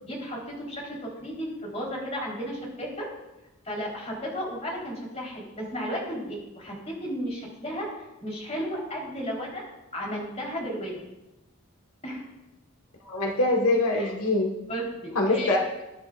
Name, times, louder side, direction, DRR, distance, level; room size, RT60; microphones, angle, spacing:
voice 1, 0.0-3.1 3.6-7.9 8.2-9.6 9.9-11.0 12.0-12.2 13.9-14.1 14.7-15.6, equal, 30° left, -3 dB, 4.0 m, -34 dB
voice 2, 13.0-14.5 15.1-15.8, left 2 dB, 85° left, 0 dB, 1.6 m, -24 dB
20.0 x 10.5 x 2.5 m, 0.99 s
head